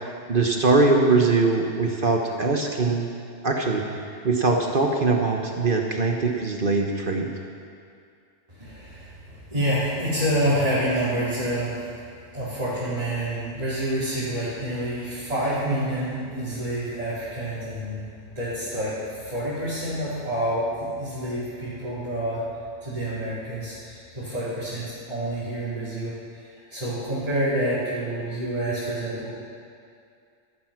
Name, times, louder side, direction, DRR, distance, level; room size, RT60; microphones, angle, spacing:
voice 1, 0.0-3.1 3.4-7.3, right 3 dB, 45° right, 2 dB, 1.3 m, -22 dB
voice 2, 8.5-11.9 12.3-18.1 18.3-22.4 22.8-29.3, right 1 dB, 25° right, -14 dB, 4.2 m, -28 dB
14.5 x 12.5 x 6.0 m, 2.4 s
omnidirectional pair, 1.3 m